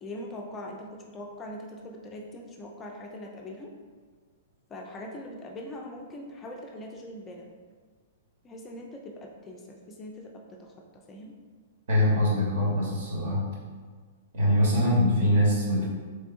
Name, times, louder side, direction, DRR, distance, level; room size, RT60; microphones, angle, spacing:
voice 1, 0.0-3.7 4.7-7.4 8.4-10.7 11.1-11.4, left 1 dB, 20° left, 0 dB, 0.4 m, -41 dB
voice 2, 11.9-13.4 14.3-15.9, left 1 dB, 55° right, -4 dB, 1.1 m, -23 dB
3.4 x 3.2 x 2.5 m, 1.5 s
figure-of-eight pair, 105°, 0 cm